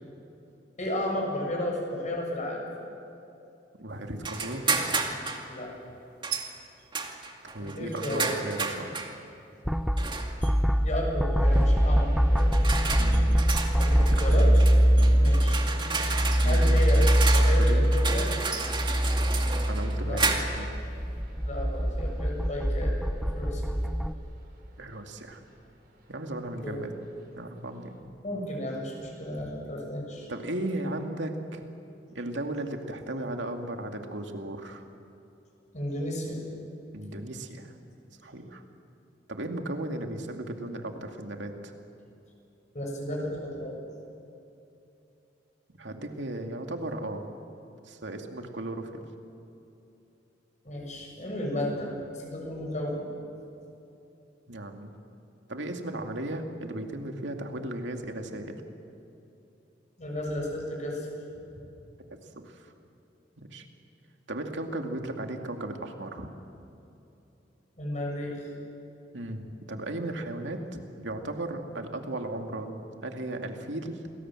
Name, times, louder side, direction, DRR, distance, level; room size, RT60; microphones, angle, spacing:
voice 1, 0.8-2.7 5.5-5.7 7.6-8.3 10.8-12.5 13.7-14.5 15.2-15.6 16.4-17.0 17.3-18.3 20.0-20.4 21.4-23.0 23.3-23.6 26.6-26.8 28.2-30.3 35.7-36.4 42.7-43.8 50.6-53.1 60.0-61.1 67.8-68.4, left 1 dB, 40° left, 0 dB, 7.2 m, -33 dB
voice 2, 3.8-4.7 7.5-8.9 13.0-13.4 14.1-14.4 15.0-15.2 16.4-17.1 17.7-17.9 19.7-20.7 24.8-25.5 26.1-26.9 27.3-28.0 30.3-31.6 32.1-34.8 36.9-37.7 38.2-38.6 39.3-41.7 45.8-47.3 47.8-48.9 54.5-54.9 55.5-58.6 62.3-62.7 63.4-63.7 64.3-66.3 69.1-74.0, right 1 dB, 80° right, 4 dB, 2.5 m, -36 dB
sound 1, 4.2-5.5 6.2-6.5 6.9-9.1 10.0-10.5 11.5-11.7 12.4-20.7, right 4 dB, 25° right, 2.3 m, -32 dB
sound 2, 9.6-24.1, equal, ahead, 0.7 m, -23 dB
sound 3, 11.4-28.0, equal, 60° right, 5.8 m, -48 dB
29.0 x 20.5 x 7.7 m, 2.9 s
head